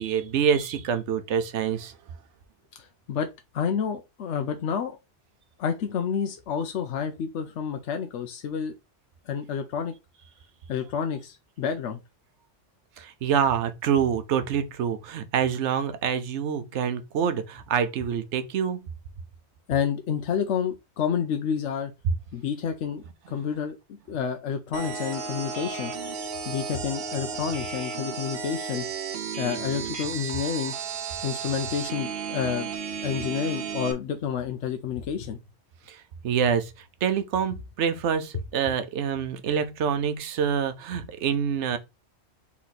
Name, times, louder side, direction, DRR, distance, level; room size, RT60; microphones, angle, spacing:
voice 1, 0.0-1.9 13.0-18.9 22.0-22.1 35.9-36.7 37.0-41.8, right 7 dB, 85° right, 1.0 m, -26 dB
voice 2, 2.8-3.3 3.5-5.0 5.6-8.7 9.3-9.9 10.7-12.0 19.7-21.9 22.3-23.8 24.1-25.9 26.5-28.8 29.4-30.7 31.2-32.7 33.0-35.4, left 7 dB, 90° left, 1.0 m, -29 dB
sound 1, 24.7-33.9, right 6 dB, 60° right, 1.0 m, -33 dB
4.3 x 3.1 x 3.9 m
omnidirectional pair, 1.2 m